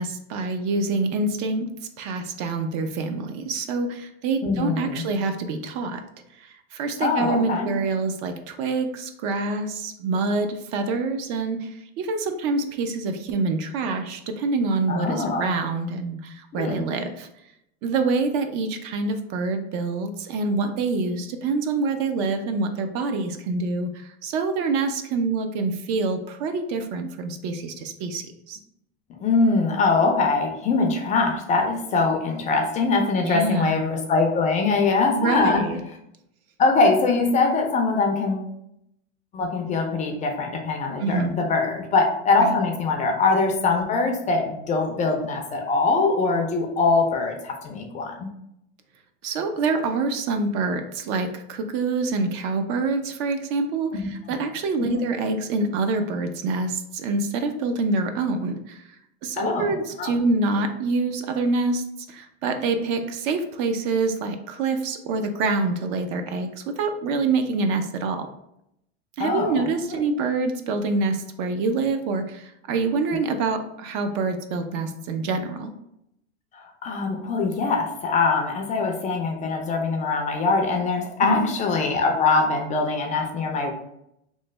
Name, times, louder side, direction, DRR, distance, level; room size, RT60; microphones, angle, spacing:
voice 1, 0.0-1.7 2.0-6.0 6.4-11.7 12.0-17.3 17.8-28.6 33.2-33.8 35.2-35.8 41.0-41.3 42.4-42.5 49.2-58.8 59.2-68.3 69.2-75.7 81.2-81.5, right 3 dB, 50° right, 7 dB, 0.4 m, -26 dB
voice 2, 4.4-5.0 7.0-7.7 14.9-15.6 16.5-16.8 29.2-35.6 36.6-38.5 39.3-48.3 53.9-54.1 54.8-55.0 59.4-60.1 69.2-70.0 76.5-83.7, left 4 dB, 25° left, 2 dB, 0.4 m, -23 dB
3.1 x 2.1 x 3.2 m, 0.80 s
supercardioid pair, 130°, 31 cm